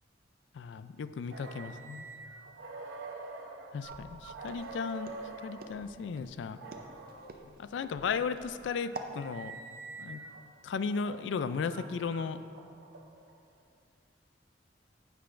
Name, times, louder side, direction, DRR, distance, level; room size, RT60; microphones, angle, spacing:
voice 1, 0.5-2.1 3.7-5.1 5.4-6.6 7.6-9.6 10.0-10.2 10.6-12.4, left 5 dB, 75° left, 12 dB, 0.3 m, -35 dB
sound 1, 1.3-5.9 6.5-7.3 8.1-10.4 11.0-13.4, right 3 dB, 85° right, 0.8 m, -46 dB
Walk footsteps, 3.8-9.2, right 2 dB, 50° right, 0.6 m, -48 dB
10.0 x 8.2 x 2.5 m, 2.3 s
head